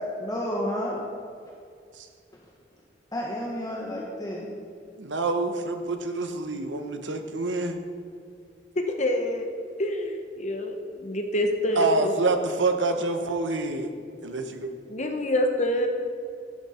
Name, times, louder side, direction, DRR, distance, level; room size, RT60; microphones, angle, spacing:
voice 1, 0.2-1.0 3.1-4.5, equal, 20° left, -3 dB, 1.3 m, -31 dB
voice 2, 5.0-7.8 11.7-13.9 14.2-14.7, right 3 dB, 90° right, 6 dB, 1.1 m, -27 dB
voice 3, 9.0-9.5 9.8-12.1 14.9-15.9, left 1 dB, 40° left, 4 dB, 1.0 m, -26 dB
13.5 x 11.5 x 4.4 m, 2.3 s
head